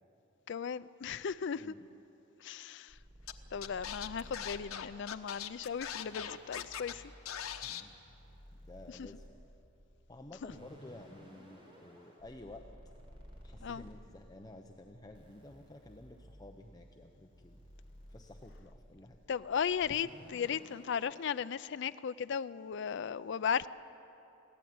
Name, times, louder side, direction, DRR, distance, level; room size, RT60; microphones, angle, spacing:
voice 1, 0.5-1.7 2.4-2.9 3.5-7.0 13.6-13.8 19.3-23.7, left 7 dB, 55° left, 13 dB, 0.4 m, -36 dB
voice 2, 1.6-1.9 7.6-8.0 8.6-9.2 10.1-12.7 13.4-17.6 18.1-19.2, left 1 dB, 20° left, 3 dB, 0.8 m, -52 dB
sound 1, 2.9-21.5, equal, 25° right, 4.3 m, -56 dB
Scratching (performance technique), 3.3-3.4 3.6-6.9 7.3-7.8, left 9 dB, 85° left, 1.0 m, -41 dB
22.5 x 16.0 x 9.4 m, 3.0 s
head